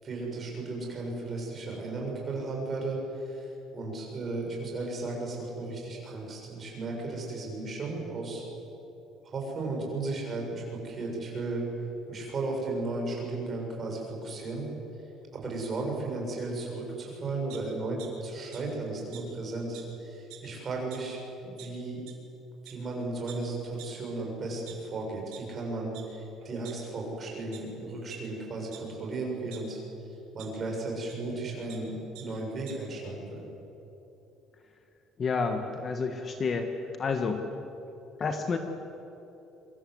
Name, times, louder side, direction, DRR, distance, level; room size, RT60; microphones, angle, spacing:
voice 1, 0.0-8.4 9.2-11.7 12.1-14.7 15.0-22.0 22.6-33.5, right 2 dB, 25° right, -1 dB, 7.1 m, -35 dB
sound 1, 17.5-18.1 18.5-18.6 19.1-19.2 19.7-19.8 20.2-20.5 20.9-21.0 21.6-21.7 22.1-22.2 22.7-22.8 23.3-23.4 23.8-23.9 24.5-25.4 25.9-26.0 26.4-27.1 27.5-27.6 28.1-28.2 28.7-29.6 30.4-30.5 31.1-31.2 31.5-31.8 32.1-32.2 32.5-32.7, right 14 dB, 85° right, 5.4 m, -48 dB
voice 2, 35.2-36.7 37.0-37.4 38.2-38.6, left 4 dB, 25° left, 5 dB, 1.5 m, -29 dB
26.5 x 25.0 x 8.0 m, 3.0 s
cardioid pair, 175°, 0 cm